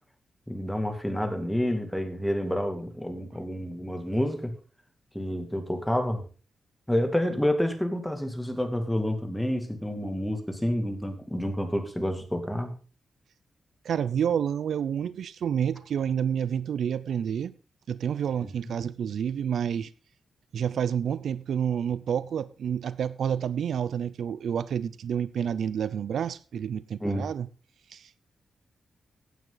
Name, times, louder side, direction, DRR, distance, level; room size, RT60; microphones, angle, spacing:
voice 1, 0.5-4.6 5.1-6.2 6.9-12.7 27.0-27.3, left 1 dB, 5° left, 2.3 m, -29 dB
voice 2, 13.8-17.5 17.9-19.9 20.5-27.5 27.9-28.2, right 8 dB, 80° right, 0.5 m, -29 dB
16.0 x 9.3 x 4.0 m
cardioid pair, 105°, 0 cm